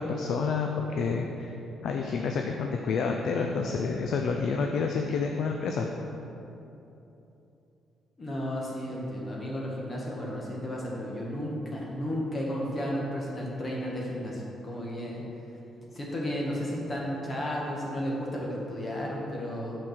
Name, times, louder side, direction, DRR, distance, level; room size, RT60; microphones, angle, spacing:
voice 1, 0.0-1.5 1.8-5.9, left 5 dB, 70° left, 3 dB, 0.5 m, -29 dB
voice 2, 8.2-15.2 15.9-19.8, equal, 35° left, -3 dB, 1.5 m, -33 dB
5.9 x 4.6 x 6.5 m, 2.9 s
cardioid pair, 90°, 0 cm